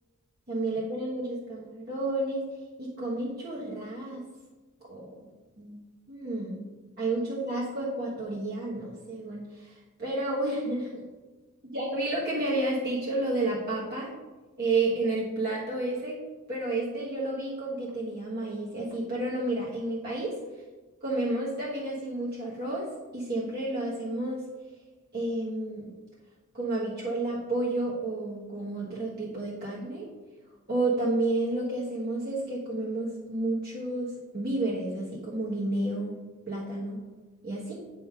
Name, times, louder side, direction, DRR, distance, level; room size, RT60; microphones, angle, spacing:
voice 1, 0.5-2.5 2.8-4.2 4.8-5.3 5.6-5.8 6.1-6.6 7.0-11.0 11.7-14.1 14.6-16.2 16.5-20.4 21.0-24.4 25.1-25.9 26.5-30.1 30.7-36.1 36.5-37.0 37.4-37.7, right 2 dB, 45° right, -7 dB, 1.5 m, -31 dB
8.6 x 3.5 x 5.4 m, 1.2 s
head